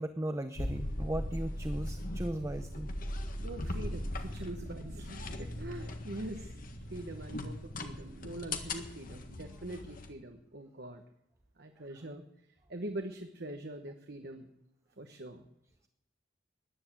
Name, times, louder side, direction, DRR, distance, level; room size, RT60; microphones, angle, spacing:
voice 1, 0.0-2.9, right 1 dB, 15° right, 9 dB, 0.7 m, -37 dB
sound 1, 0.6-10.1, left 1 dB, 45° left, 1.7 m, -39 dB
sound 2, 2.6-8.8, equal, 70° left, 1.9 m, -47 dB
voice 2, 3.4-6.5 6.9-11.0 11.6-12.2 12.7-14.5 15.0-15.4, right 1 dB, 55° right, 6 dB, 1.2 m, -43 dB
14.5 x 10.5 x 8.7 m, 0.83 s
head